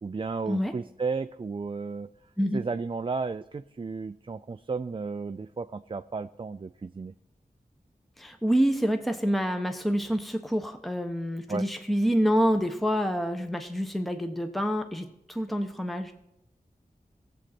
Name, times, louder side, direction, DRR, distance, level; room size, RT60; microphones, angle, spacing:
voice 1, 0.0-2.1 2.5-7.1 11.5-11.6, right 4 dB, 35° right, 10 dB, 0.4 m, -33 dB
voice 2, 8.2-16.1, equal, ahead, 6 dB, 1.0 m, -27 dB
17.0 x 7.5 x 4.3 m, 0.79 s
wide cardioid pair, 50°, 16 cm